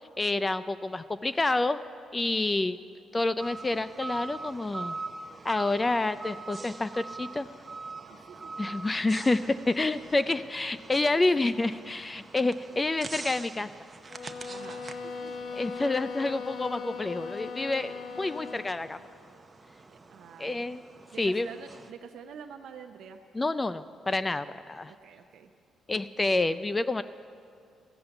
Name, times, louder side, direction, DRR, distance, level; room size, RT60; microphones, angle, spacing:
voice 1, 0.2-1.8 2.1-2.8 3.1-5.0 5.4-7.5 8.6-13.7 15.6-19.0 20.4-20.8 21.2-21.5 23.3-24.9 25.9-27.0, left 2 dB, 20° left, 14 dB, 0.3 m, -28 dB
sound 1, 3.4-21.9, right 3 dB, 25° right, 0.7 m, -44 dB
voice 2, 8.1-8.8 14.5-15.4 19.9-20.6 21.1-23.2 24.9-25.5, right 7 dB, 70° right, 4 dB, 0.6 m, -47 dB
sound 2, 14.1-18.8, left 5 dB, 50° left, 0.8 m, -39 dB
15.0 x 6.9 x 8.8 m, 2.3 s
cardioid pair, 90°, 0 cm